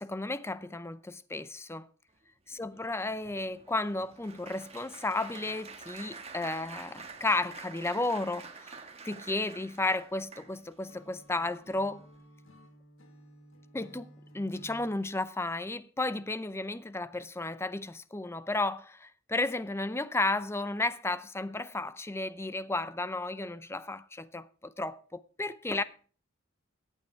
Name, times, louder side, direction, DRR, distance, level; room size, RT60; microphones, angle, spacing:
voice 1, 0.0-1.9 2.5-8.8 9.0-12.0 13.7-25.8, left 2 dB, 15° left, 0.6 m, -33 dB
Applause, 2.5-10.8 11.5-11.7 12.0-12.2, right 5 dB, 30° right, 1.6 m, -48 dB
Acoustic guitar / Strum, 10.9-15.0, equal, 80° left, 2.1 m, -55 dB
14.5 x 9.2 x 4.5 m
head